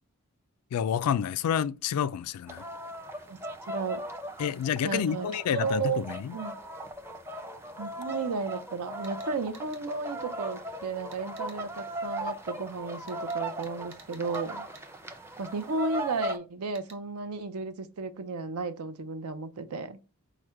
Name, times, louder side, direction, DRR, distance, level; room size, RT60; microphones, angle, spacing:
voice 1, 0.7-2.7 4.4-6.3, left 8 dB, 85° left, 0.3 m, -29 dB
sound 1, 2.5-16.4, right 1 dB, 10° right, 0.5 m, -38 dB
voice 2, 3.7-4.0 4.8-6.0 6.3-6.6 7.8-14.7 15.4-20.0, right 4 dB, 85° right, 0.6 m, -33 dB
sound 2, 9.0-9.8 11.1-11.6 13.1-14.5 14.7-14.9 16.7-17.0, right 5 dB, 60° right, 1.0 m, -54 dB
4.8 x 2.1 x 4.4 m
head